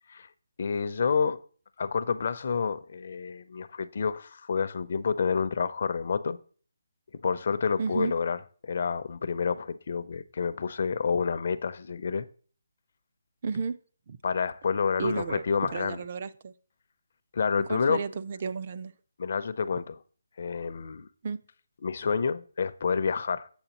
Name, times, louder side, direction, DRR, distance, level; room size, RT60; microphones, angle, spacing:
voice 1, 0.6-1.4 1.8-6.4 7.2-8.4 8.6-12.3 14.2-16.0 17.3-18.0 19.2-20.0 20.4-21.1 21.8-23.5, left 5 dB, 50° left, 0.5 m, -29 dB
voice 2, 7.8-8.1 13.4-13.8 14.1-14.2 15.0-16.5 17.6-18.9 21.2-21.4, right 5 dB, 40° right, 0.4 m, -32 dB
7.9 x 6.6 x 2.9 m
hypercardioid pair, 165°, 0 cm